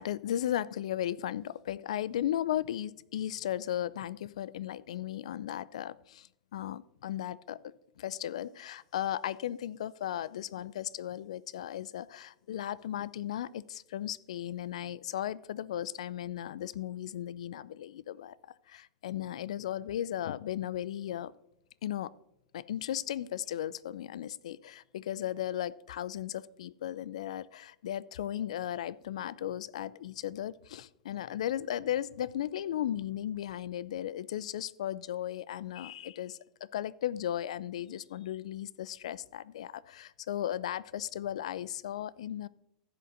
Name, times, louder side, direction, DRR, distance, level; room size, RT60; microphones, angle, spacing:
voice 1, 0.0-18.3 18.7-21.3 21.8-22.1 22.5-42.5, left 11 dB, 70° left, 20 dB, 0.3 m, -36 dB
15.0 x 7.5 x 2.6 m, 0.81 s
hypercardioid pair, 95°, 4 cm